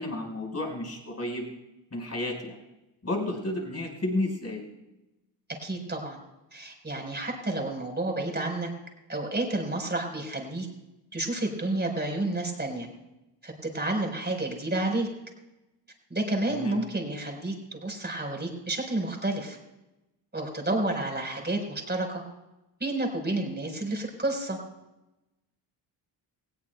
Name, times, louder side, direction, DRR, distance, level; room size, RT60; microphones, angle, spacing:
voice 1, 0.0-1.5 1.9-2.6 3.0-4.6 16.5-16.8, left 1 dB, 35° left, 1 dB, 5.0 m, -32 dB
voice 2, 5.6-6.2 6.5-8.7 9.1-10.7 11.1-12.9 13.4-15.1 16.1-19.6 20.3-22.2 22.8-24.6, right 2 dB, 20° right, 2 dB, 4.5 m, -30 dB
19.0 x 16.5 x 2.3 m, 0.96 s
cardioid pair, 70°, 46 cm